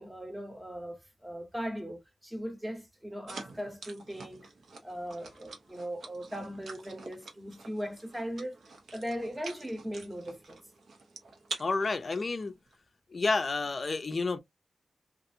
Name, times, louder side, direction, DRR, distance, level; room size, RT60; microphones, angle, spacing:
voice 1, 0.0-4.5 4.8-8.6 8.9-10.6, equal, 10° right, 0.8 m, -39 dB
sound 1, 3.3-12.7, right 4 dB, 90° right, 0.9 m, -47 dB
voice 2, 11.6-12.5 13.1-14.4, left 3 dB, 40° left, 0.4 m, -30 dB
2.6 x 2.5 x 2.6 m
wide cardioid pair, 140°, 0 cm